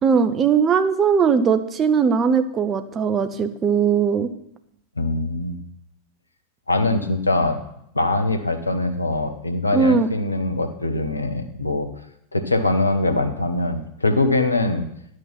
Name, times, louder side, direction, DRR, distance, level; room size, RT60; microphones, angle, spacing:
voice 1, 0.0-4.3 9.7-10.1, right 6 dB, 25° right, 10 dB, 0.8 m, -19 dB
voice 2, 5.0-5.6 6.7-7.6 7.9-11.9 12.3-14.9, left 2 dB, 80° left, 9 dB, 1.0 m, -22 dB
11.0 x 6.4 x 5.9 m, 0.77 s
figure-of-eight pair, 90°, 0 cm